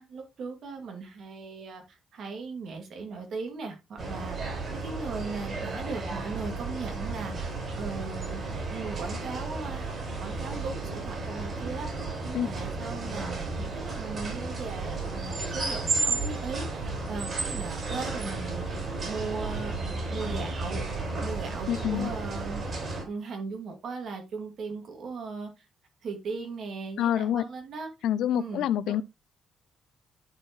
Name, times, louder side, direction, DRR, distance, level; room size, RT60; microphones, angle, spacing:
voice 1, 0.0-7.5 7.8-8.4 8.7-9.9 10.2-19.7 20.1-20.8 21.2-22.6 23.1-25.5 26.0-27.9 28.3-28.9, right 4 dB, 65° right, 2.3 m, -38 dB
sound 1, 4.0-23.0, right 3 dB, 45° right, 4.3 m, -33 dB
voice 2, 21.7-22.1 27.0-27.5 28.0-29.0, left 11 dB, 80° left, 0.4 m, -27 dB
10.5 x 4.7 x 3.0 m
cardioid pair, 90°, 0 cm